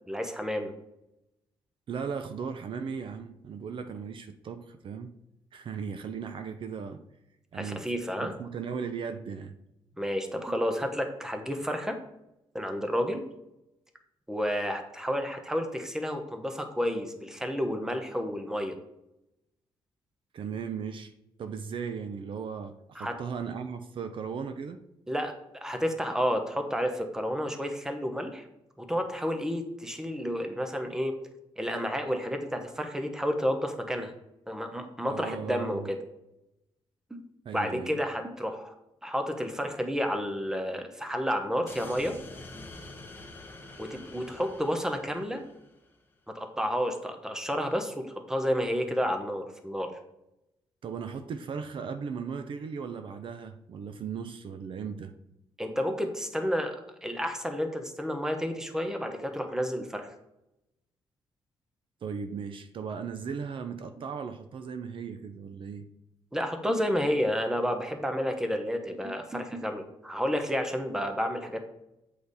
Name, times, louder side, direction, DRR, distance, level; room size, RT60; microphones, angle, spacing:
voice 1, 0.1-0.7 7.5-8.3 10.0-12.0 12.5-13.2 14.3-18.7 23.0-23.2 25.1-25.3 25.6-28.4 28.8-31.2 31.6-34.1 34.5-36.0 37.1-37.2 37.5-38.7 39.0-42.2 43.8-45.4 46.3-49.9 55.6-60.1 66.3-71.7, equal, 5° right, 5 dB, 1.0 m, -31 dB
voice 2, 1.9-5.1 5.5-7.0 7.5-9.5 20.3-21.1 21.4-24.8 35.1-35.9 37.4-38.0 50.8-55.1 62.0-65.9, right 6 dB, 55° right, 8 dB, 0.5 m, -37 dB
sound 1, 41.7-46.0, left 2 dB, 20° left, 1.1 m, -47 dB
8.0 x 5.0 x 4.1 m, 0.87 s
cardioid pair, 130°, 10 cm